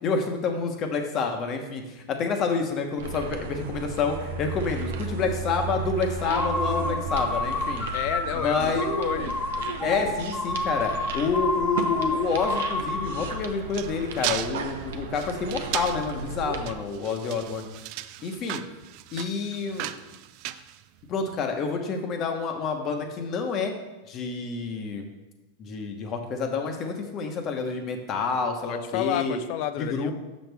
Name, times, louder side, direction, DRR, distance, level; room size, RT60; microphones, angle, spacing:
voice 1, 0.0-7.9 8.3-8.9 9.8-17.7 18.2-18.6 19.1-19.9 21.1-23.7 24.1-25.0 25.6-29.4 29.8-30.1, left 4 dB, 40° left, 5 dB, 1.0 m, -28 dB
sound 1, 3.0-16.7, right 4 dB, 80° right, 0.7 m, -35 dB
sound 2, 6.2-13.4, left 2 dB, 15° left, 1.2 m, -29 dB
voice 2, 7.9-8.7 9.0-10.2 28.7-30.1, left 11 dB, 55° left, 12 dB, 0.4 m, -31 dB
sound 3, 13.1-21.4, right 14 dB, 55° right, 0.3 m, -36 dB
6.2 x 6.2 x 3.4 m, 1.1 s
hypercardioid pair, 120°, 0 cm